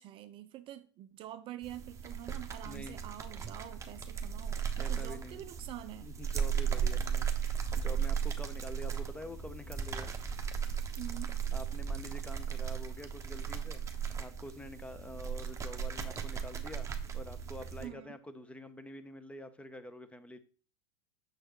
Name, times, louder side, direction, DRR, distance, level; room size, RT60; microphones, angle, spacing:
voice 1, 0.0-6.1 11.0-11.3 17.8-18.2, right 14 dB, 35° right, 0.5 m, -46 dB
sound 1, 1.6-17.9, right 7 dB, 20° right, 0.9 m, -36 dB
voice 2, 2.7-3.0 4.8-5.4 6.0-10.1 11.5-16.9 17.1-20.4, left 1 dB, 10° left, 0.7 m, -47 dB
6.6 x 6.4 x 3.0 m
hypercardioid pair, 90°, 15 cm